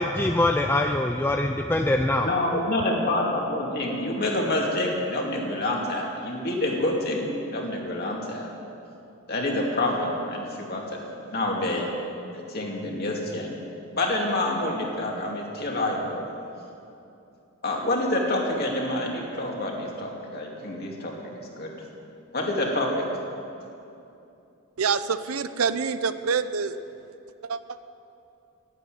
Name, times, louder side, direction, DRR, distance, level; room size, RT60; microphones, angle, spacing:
voice 1, 0.0-2.3, left 1 dB, 10° left, 4 dB, 0.4 m, -23 dB
voice 2, 2.2-8.5 9.3-11.9 12.3-13.6 14.0-16.2 17.6-21.7 22.3-23.1, left 1 dB, 45° left, -1 dB, 2.5 m, -27 dB
voice 3, 24.8-26.8 27.4-27.6, right 5 dB, 80° right, 12 dB, 0.6 m, -26 dB
11.5 x 11.0 x 9.3 m, 2.8 s
head